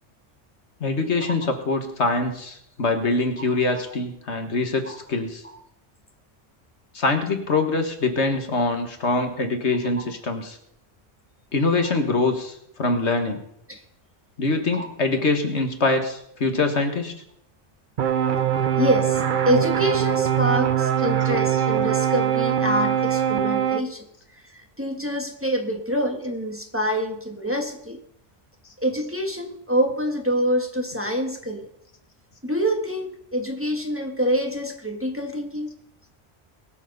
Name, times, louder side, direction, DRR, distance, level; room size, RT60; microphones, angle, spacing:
voice 1, 0.8-5.4 6.9-10.6 11.5-13.4 14.4-17.2, left 3 dB, 75° left, 6 dB, 1.8 m, -24 dB
sound 1, 18.0-23.8, right 9 dB, 50° right, 0.7 m, -22 dB
voice 2, 18.8-24.1 24.4-28.0 28.8-31.7 32.4-35.7, equal, 10° right, 3 dB, 1.6 m, -26 dB
21.5 x 7.4 x 5.4 m, 0.74 s
omnidirectional pair, 1.2 m